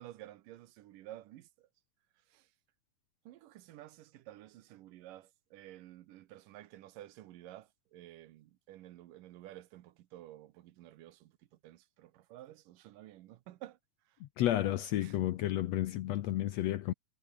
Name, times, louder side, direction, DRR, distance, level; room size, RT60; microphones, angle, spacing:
voice 1, 0.0-1.7 2.3-2.5 3.3-11.3 11.6-13.8 15.0-15.2, right 14 dB, 85° right, 2.6 m, -52 dB
voice 2, 14.2-16.9, left 13 dB, 75° left, 1.7 m, -32 dB
omnidirectional pair, 3.8 m